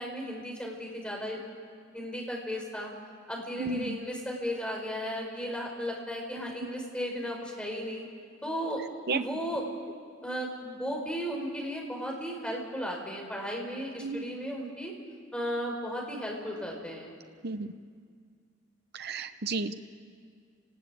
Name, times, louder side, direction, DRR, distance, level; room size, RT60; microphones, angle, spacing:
voice 1, 0.0-1.4 1.9-2.9 3.3-8.0 8.4-8.8 9.1-9.7 10.2-14.9 15.3-17.1, equal, 5° left, -1 dB, 5.1 m, -35 dB
voice 2, 3.6-4.0 6.4-6.5 9.1-9.2 14.0-14.2 17.4-17.7 18.9-19.7, right 4 dB, 55° right, 9 dB, 0.8 m, -32 dB
29.5 x 20.0 x 8.6 m, 2.1 s
head